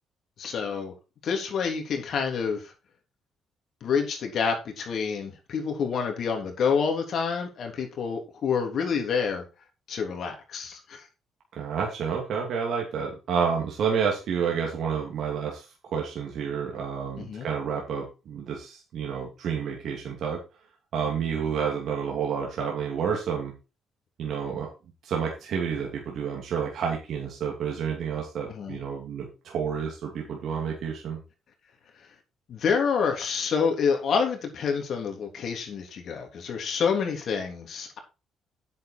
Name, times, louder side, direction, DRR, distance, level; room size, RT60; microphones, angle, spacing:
voice 1, 0.4-0.9 1.2-2.7 3.8-9.4 9.9-11.0 17.2-17.5 28.5-28.8 32.5-38.0, left 6 dB, 65° left, 3 dB, 3.2 m, -28 dB
voice 2, 11.5-20.4 20.9-23.5 24.2-24.7 25.0-31.2, right 6 dB, 70° right, 0 dB, 2.8 m, -29 dB
9.2 x 7.6 x 4.5 m, 0.29 s
cardioid pair, 90°, 0 cm